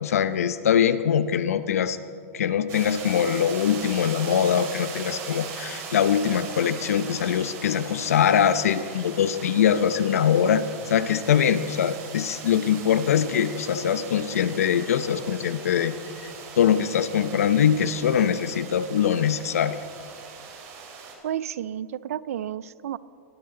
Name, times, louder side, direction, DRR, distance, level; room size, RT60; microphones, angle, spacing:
voice 1, 0.0-2.0 2.3-15.9 16.2-19.8, left 8 dB, 85° left, 13 dB, 0.8 m, -23 dB
sound 1, 2.7-21.1, right 5 dB, 40° right, 3.2 m, -40 dB
voice 2, 21.2-23.0, right 10 dB, 80° right, 19 dB, 0.5 m, -31 dB
19.5 x 15.0 x 3.9 m, 2.3 s
hypercardioid pair, 130°, 8 cm